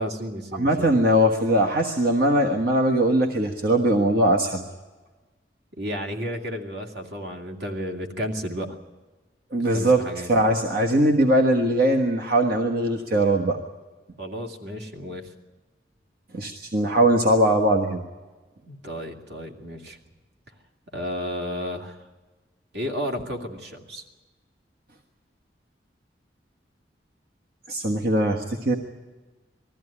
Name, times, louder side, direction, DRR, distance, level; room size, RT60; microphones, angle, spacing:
voice 1, 0.0-0.9 5.8-8.7 9.6-10.3 14.2-15.3 18.7-20.0 20.9-22.0 22.7-24.0, equal, 80° right, 2 dB, 2.4 m, -32 dB
voice 2, 0.5-4.6 9.5-13.6 16.3-18.0 27.7-28.8, right 1 dB, 60° right, 2 dB, 1.4 m, -21 dB
20.0 x 14.5 x 9.9 m, 1.3 s
head